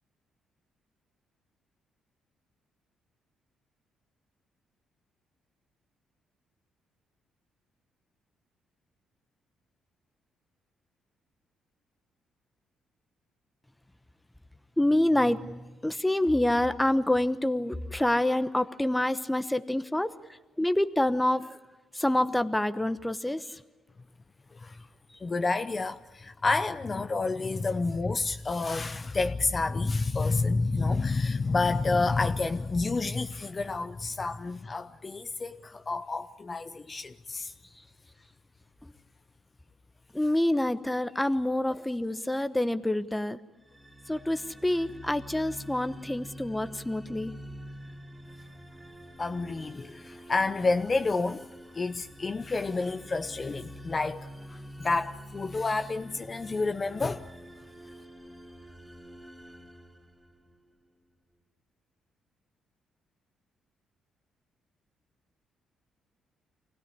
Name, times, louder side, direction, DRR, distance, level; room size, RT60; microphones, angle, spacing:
voice 1, 14.8-20.2 20.6-21.6 21.9-23.6 38.8-38.9 40.1-43.4 44.1-47.4, left 1 dB, 5° left, 1.0 m, -27 dB
voice 2, 25.2-37.5 49.2-51.5 51.7-57.2, left 3 dB, 30° left, 0.7 m, -29 dB
sound 1, 43.6-60.7, equal, 10° right, 2.3 m, -47 dB
25.0 x 17.0 x 9.6 m
cardioid pair, 90°, 0 cm